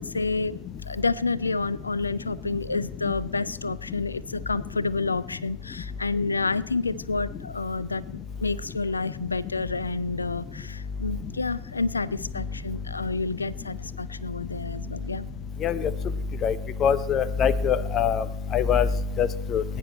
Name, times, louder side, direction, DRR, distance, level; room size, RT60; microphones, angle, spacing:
voice 1, 0.0-8.0 8.4-15.3, left 3 dB, 80° left, 21 dB, 0.4 m, -29 dB
voice 2, 16.8-18.2 18.5-18.9 19.2-19.6, left 7 dB, 30° left, 17 dB, 0.7 m, -23 dB
21.0 x 9.9 x 4.4 m, 0.87 s
figure-of-eight pair, 90°, 0 cm